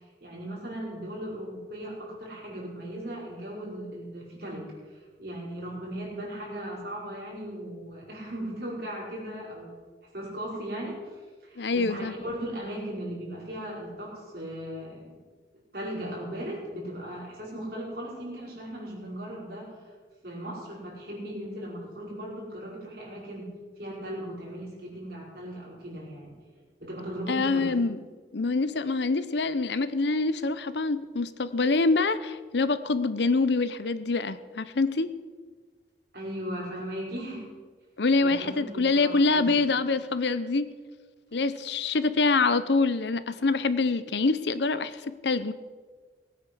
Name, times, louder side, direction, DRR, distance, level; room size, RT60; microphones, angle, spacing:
voice 1, 0.2-4.7 5.2-9.8 10.1-11.2 11.4-15.2 15.7-19.7 20.2-23.5 23.8-26.3 26.8-27.8 36.1-37.4 38.2-39.6, right 1 dB, 55° right, -4 dB, 5.2 m, -37 dB
voice 2, 11.6-12.1 27.3-28.0 28.3-35.1 38.0-40.7 41.3-45.5, left 3 dB, 70° left, 13 dB, 0.7 m, -25 dB
18.5 x 8.9 x 6.2 m, 1.5 s
head